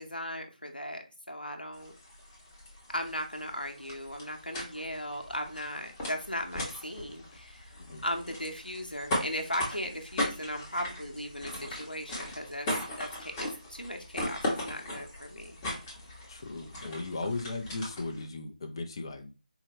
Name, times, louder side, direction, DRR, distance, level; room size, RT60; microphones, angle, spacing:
voice 1, 0.0-1.9 2.9-7.7 8.0-12.7 13.0-15.6, left 1 dB, 90° left, 3 dB, 0.9 m, -37 dB
sound 1, 1.7-18.2, left 1 dB, 15° left, 0.8 m, -38 dB
voice 2, 16.3-19.3, left 3 dB, 30° left, 4 dB, 0.5 m, -37 dB
4.6 x 2.2 x 2.9 m, 0.32 s
figure-of-eight pair, 160°, 5 cm